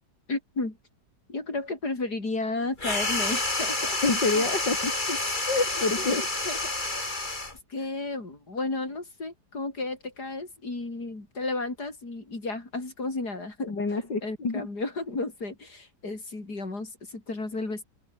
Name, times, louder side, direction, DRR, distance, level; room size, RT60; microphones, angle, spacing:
voice 1, 0.3-0.8 1.3-4.0 4.3-4.5 5.1-5.2 6.0-6.6 7.7-13.7 14.2-17.8, left 3 dB, 65° left, 6.2 m, -33 dB
sound 1, 2.8-7.6, left 2 dB, 25° left, 3.4 m, -29 dB
voice 2, 4.0-4.9 5.5-6.2 13.6-14.7, left 3 dB, 85° left, 5.0 m, -27 dB
open air
omnidirectional pair, 1.9 m